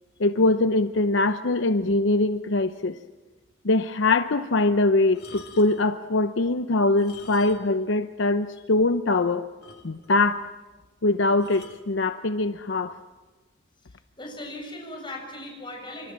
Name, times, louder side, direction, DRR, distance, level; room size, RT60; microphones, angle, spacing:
voice 1, 0.2-2.9 3.6-9.4 9.8-10.5 11.0-13.0, left 2 dB, 70° left, 10 dB, 0.8 m, -22 dB
sound 1, 5.1-5.9 6.9-7.9 8.1-8.3 8.8-8.9 9.1-9.2 9.6-10.3 11.4-11.9 12.7-13.0, left 4 dB, 55° left, 2.4 m, -48 dB
voice 2, 14.2-16.1, left 1 dB, 25° left, 2 dB, 6.9 m, -38 dB
28.5 x 25.0 x 7.4 m, 1.2 s
head